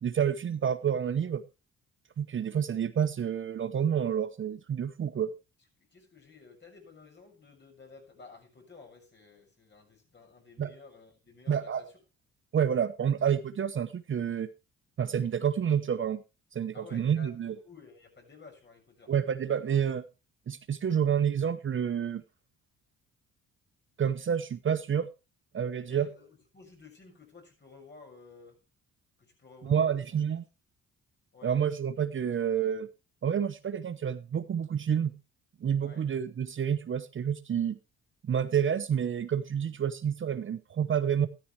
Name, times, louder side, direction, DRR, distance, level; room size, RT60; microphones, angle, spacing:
voice 1, 0.0-1.4 2.2-5.3 10.6-10.7 11.5-11.8 12.5-14.5 15.0-16.2 16.5-17.5 19.1-20.0 20.5-22.2 24.0-25.1 25.5-26.1 29.6-30.4 31.4-32.9 33.2-35.2 35.6-37.8 38.2-41.3, right 8 dB, 40° right, 0.8 m, -29 dB
voice 2, 5.9-12.0 16.7-19.1 25.9-26.3 26.5-28.6 29.2-30.0 31.3-31.5 35.8-36.1, left 4 dB, 35° left, 6.6 m, -53 dB
13.5 x 13.0 x 3.2 m
cardioid pair, 90°, 30 cm